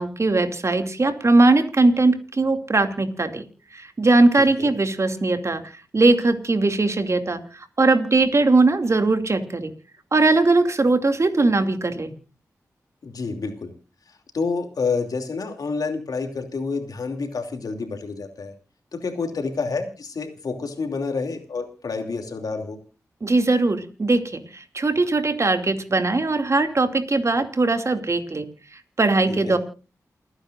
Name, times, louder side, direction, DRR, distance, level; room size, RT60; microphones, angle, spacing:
voice 1, 0.0-3.5 3.7-5.6 5.9-9.7 10.1-12.1 23.2-28.4 29.0-29.6, right 2 dB, 50° right, 7 dB, 2.5 m, -20 dB
voice 2, 4.4-4.8 13.0-13.7 14.3-18.5 18.9-22.8 29.3-29.6, left 4 dB, 80° left, 5 dB, 2.8 m, -29 dB
29.0 x 9.8 x 2.6 m, 0.33 s
cardioid pair, 45°, 6 cm